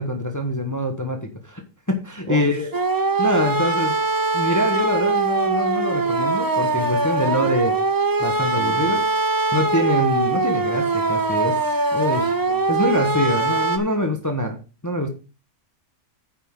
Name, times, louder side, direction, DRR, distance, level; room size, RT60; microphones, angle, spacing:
voice 1, 0.0-1.6 1.9-2.7 3.2-4.0 4.3-7.8 8.2-9.0 9.5-11.6 11.9-12.4 12.7-14.6 14.8-15.1, left 1 dB, 15° left, 1.1 m, -24 dB
voice 2, 2.3-2.7 8.6-9.0 12.4-12.6, right 4 dB, 60° right, 1.8 m, -33 dB
sound 1, 2.7-13.8, right 3 dB, 25° right, 0.4 m, -22 dB
9.5 x 7.3 x 3.8 m
omnidirectional pair, 1.5 m